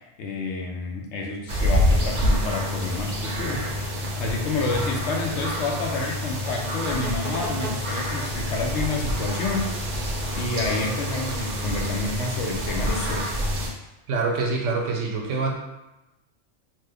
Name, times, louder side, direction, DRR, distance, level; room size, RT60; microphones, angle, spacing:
voice 1, 0.2-3.9 4.2-9.8 10.4-13.3, left 3 dB, 70° left, 0 dB, 0.9 m, -29 dB
sound 1, 1.5-13.7, equal, 50° right, 0.6 m, -27 dB
voice 2, 14.1-15.6, right 3 dB, 85° right, 0 dB, 1.0 m, -25 dB
3.0 x 2.1 x 3.4 m, 0.98 s
omnidirectional pair, 1.2 m